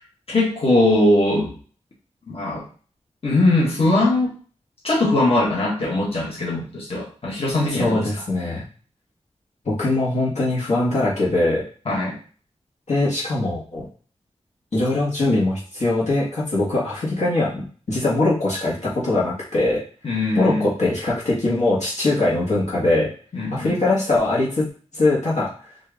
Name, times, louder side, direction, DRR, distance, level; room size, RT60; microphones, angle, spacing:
voice 1, 0.3-1.5 2.3-2.6 3.2-4.3 4.8-8.1 11.8-12.2 20.0-20.7 23.3-23.8, left 2 dB, 55° left, -5 dB, 1.5 m, -20 dB
voice 2, 7.8-8.6 9.6-11.6 12.9-13.9 14.7-19.8 20.3-23.1 23.5-24.7 24.9-25.5, left 2 dB, 80° left, -6 dB, 1.5 m, -21 dB
4.4 x 2.6 x 3.4 m, 0.41 s
wide cardioid pair, 100°, 12 cm